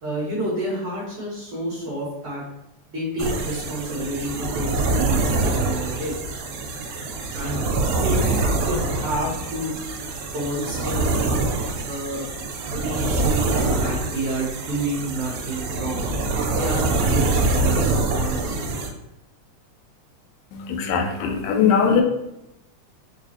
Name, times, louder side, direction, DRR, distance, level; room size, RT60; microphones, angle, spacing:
voice 1, 0.0-2.4 2.9-6.2 7.3-7.6 8.0-8.3 8.6-9.7 10.3-11.4 11.8-12.3 12.7-16.1 16.5-18.7, right 1 dB, 60° right, -7 dB, 1.6 m, -29 dB
sound 1, 3.2-18.9, right 3 dB, 85° right, 2.0 m, -24 dB
voice 2, 20.5-22.0, left 6 dB, 80° left, 3 dB, 1.9 m, -20 dB
4.8 x 2.3 x 2.8 m, 0.86 s
omnidirectional pair, 3.5 m